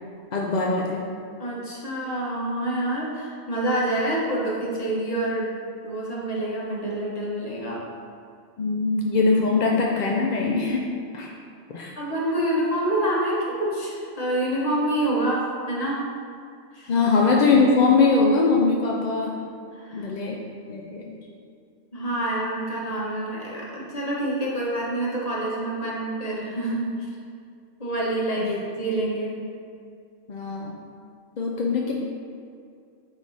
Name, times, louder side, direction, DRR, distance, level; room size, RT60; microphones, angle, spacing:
voice 1, 0.3-1.0 8.6-10.8 11.1-11.3 11.7-11.9 16.9-19.3 19.9-20.4 20.7-21.2 28.4-28.6 30.3-30.7 31.4-31.9, left 4 dB, 50° left, -1 dB, 0.5 m, -21 dB
voice 2, 1.4-5.5 5.8-7.8 11.9-16.0 16.7-16.9 19.7-20.1 21.9-26.9 27.8-28.5 28.8-29.4, right 1 dB, 30° left, -5 dB, 1.3 m, -27 dB
9.5 x 3.3 x 4.1 m, 2.4 s
omnidirectional pair, 1.3 m